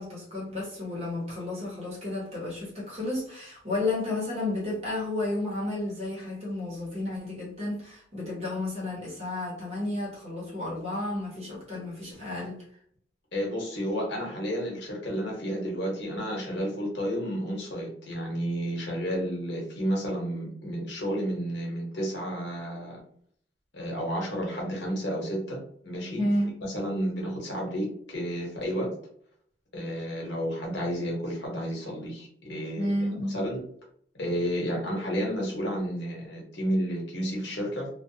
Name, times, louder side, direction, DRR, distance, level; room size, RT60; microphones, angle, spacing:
voice 1, 0.0-12.6 26.2-26.6 32.8-33.5, left 1 dB, 35° right, 1.1 m, -32 dB
voice 2, 13.3-23.0 23.7-26.3 26.7-28.9 29.7-32.9 33.3-33.6 34.2-37.9, equal, 70° left, 1.0 m, -31 dB
2.4 x 2.3 x 2.7 m
head